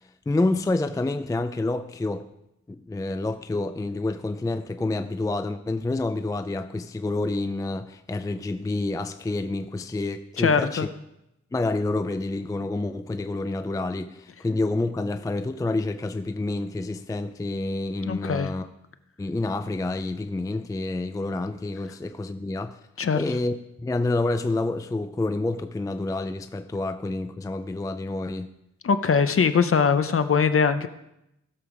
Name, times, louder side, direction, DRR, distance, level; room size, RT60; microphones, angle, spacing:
voice 1, 0.0-2.3 2.7-10.9 11.5-18.7 19.2-22.8 23.1-28.5, left 2 dB, 10° left, 0.4 m, -28 dB
voice 2, 10.4-10.9 18.1-18.5 23.0-23.2 28.8-30.9, left 6 dB, 50° left, 0.6 m, -21 dB
16.0 x 7.0 x 4.9 m
wide cardioid pair, 145°, 29 cm